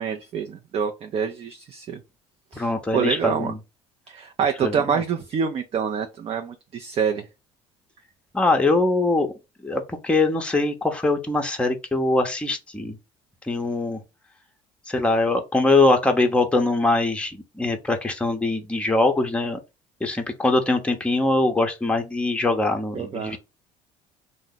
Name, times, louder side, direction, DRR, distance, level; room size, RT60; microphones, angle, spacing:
voice 1, 0.0-2.0 2.5-3.5 4.1-7.3 22.9-23.4, right 7 dB, 40° right, 0.5 m, -26 dB
voice 2, 2.6-3.6 4.6-5.0 8.3-9.3 9.6-13.0 13.5-14.0 14.9-19.6 20.0-23.4, left 2 dB, 5° left, 0.7 m, -22 dB
2.7 x 2.1 x 3.8 m
hypercardioid pair, 75°, 16 cm